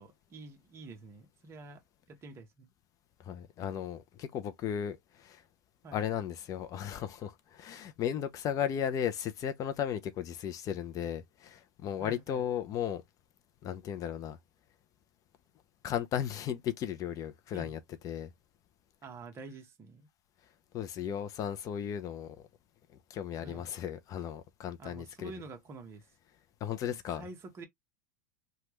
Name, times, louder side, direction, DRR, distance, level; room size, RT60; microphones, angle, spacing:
voice 1, 0.0-1.8 2.1-2.7 5.8-6.0 12.0-12.4 17.5-17.8 19.0-20.1 23.4-23.7 24.8-26.0 26.8-27.7, right 3 dB, 25° right, 0.9 m, -48 dB
voice 2, 3.2-5.4 5.9-13.0 13.6-14.4 15.8-18.3 20.7-22.4 23.1-25.3 26.6-27.3, left 9 dB, 30° left, 0.5 m, -35 dB
3.2 x 2.3 x 3.0 m
supercardioid pair, 130°, 11 cm